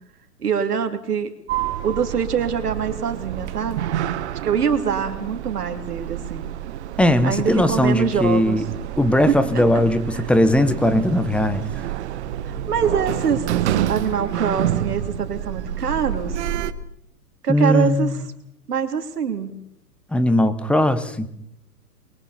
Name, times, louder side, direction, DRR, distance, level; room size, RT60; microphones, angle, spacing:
voice 1, 0.4-1.3 1.8-3.9 4.4-6.5 7.2-8.6 9.3-9.6 10.1-10.3 12.4-16.5 17.4-18.2 18.7-19.6, right 7 dB, 75° right, 6 dB, 3.2 m, -24 dB
Sliding door, 1.5-16.7, right 11 dB, 45° right, 1.5 m, -28 dB
voice 2, 7.0-8.6 9.0-11.6 17.5-18.2 20.1-21.3, left 1 dB, ahead, 12 dB, 1.0 m, -19 dB
29.0 x 22.5 x 4.3 m, 0.75 s
hypercardioid pair, 125°, 47 cm